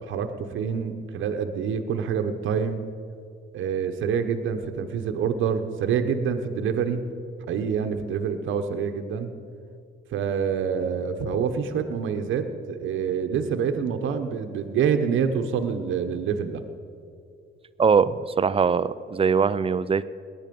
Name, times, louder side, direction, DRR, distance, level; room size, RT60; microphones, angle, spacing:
voice 1, 0.0-2.8 3.5-7.0 7.5-9.3 10.1-16.6, right 7 dB, 80° right, 7 dB, 1.0 m, -26 dB
voice 2, 17.8-20.0, right 6 dB, 30° right, 16 dB, 0.5 m, -21 dB
18.5 x 11.0 x 5.3 m, 2.3 s
cardioid pair, 90°, 20 cm